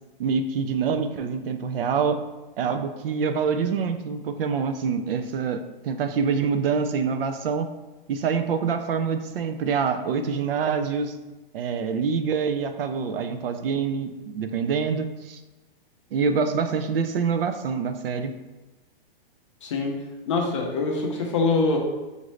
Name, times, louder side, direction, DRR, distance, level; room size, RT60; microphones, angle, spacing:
voice 1, 0.2-2.2 2.6-7.7 8.1-11.2 11.5-15.4 16.1-18.3, right 6 dB, 70° right, 9 dB, 0.5 m, -26 dB
voice 2, 19.6-20.0 20.3-21.8, left 3 dB, 30° left, 0 dB, 0.5 m, -24 dB
5.2 x 2.5 x 3.1 m, 1.1 s
hypercardioid pair, 175°, 29 cm